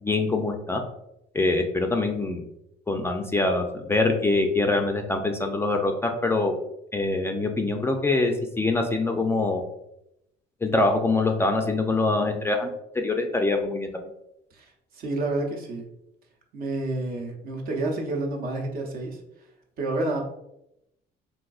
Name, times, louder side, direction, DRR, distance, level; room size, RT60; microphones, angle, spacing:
voice 1, 0.0-0.8 1.3-2.4 2.9-6.5 6.9-9.6 10.6-12.7 13.0-13.9, left 2 dB, 15° left, 3 dB, 0.3 m, -24 dB
voice 2, 14.5-15.8 16.5-19.2 19.8-20.2, right 2 dB, 60° right, 1 dB, 0.7 m, -29 dB
3.6 x 2.6 x 2.3 m, 0.82 s
cardioid pair, 110°, 17 cm